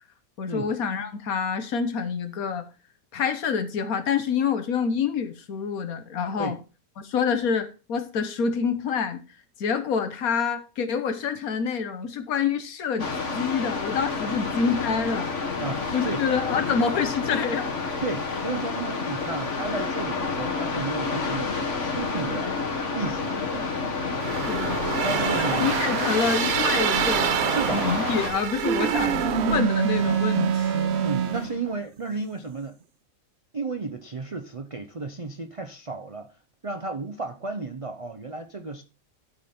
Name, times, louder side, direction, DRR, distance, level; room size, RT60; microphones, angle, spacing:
voice 1, 0.4-2.7 3.1-6.6 7.0-9.2 9.6-15.3 15.9-18.0 24.3-24.9 25.5-31.0, left 6 dB, 85° left, 1.5 m, -27 dB
sound 1, 13.0-28.3, left 4 dB, 60° left, 1.9 m, -29 dB
voice 2, 15.6-16.2 18.0-22.6 22.9-23.7 25.0-25.8 27.4-27.9 31.0-32.8 33.5-36.3 36.6-38.8, right 3 dB, 35° right, 0.6 m, -33 dB
sound 2, 24.2-29.6, right 10 dB, 85° right, 1.1 m, -27 dB
sound 3, 28.6-31.7, right 7 dB, 55° right, 1.0 m, -25 dB
12.0 x 5.2 x 4.3 m
omnidirectional pair, 1.5 m